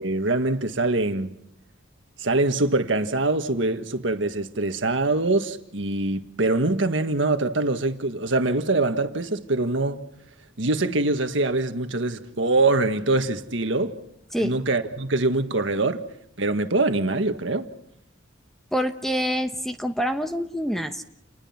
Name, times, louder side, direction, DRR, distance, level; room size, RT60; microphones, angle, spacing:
voice 1, 0.0-1.4 2.2-10.0 10.6-14.0 14.4-16.0 16.4-17.7, right 2 dB, 80° right, 1.7 m, -24 dB
voice 2, 14.3-14.6 18.7-21.0, equal, ahead, 1.0 m, -26 dB
29.5 x 20.5 x 5.9 m
head